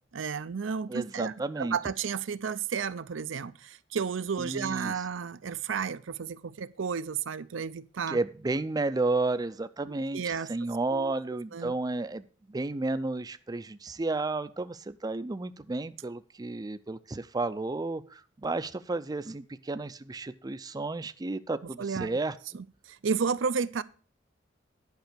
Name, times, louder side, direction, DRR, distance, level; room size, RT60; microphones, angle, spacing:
voice 1, 0.1-8.2 9.9-10.5 10.9-11.1 11.5-11.7 21.8-22.1 22.5-23.8, right 6 dB, 85° right, 14 dB, 0.5 m, -32 dB
voice 2, 0.9-1.8 4.4-4.9 8.1-22.3, right 2 dB, 20° right, 12 dB, 0.4 m, -32 dB
10.5 x 5.4 x 6.6 m, 0.39 s
head